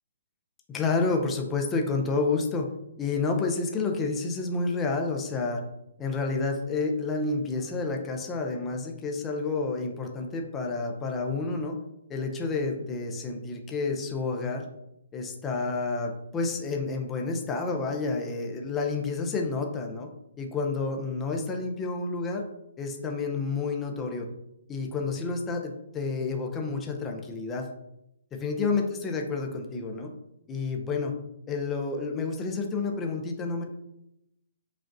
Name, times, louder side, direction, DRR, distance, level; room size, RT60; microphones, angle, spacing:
voice 1, 0.7-2.7 3.0-5.6 6.0-11.8 12.1-14.7 15.1-20.1 20.4-22.4 22.8-24.3 24.7-27.7 28.3-30.1 30.5-31.2 31.5-33.6, left 3 dB, 10° left, 2 dB, 0.4 m, -29 dB
5.1 x 2.4 x 2.6 m, 0.85 s
hypercardioid pair, 165°, 0 cm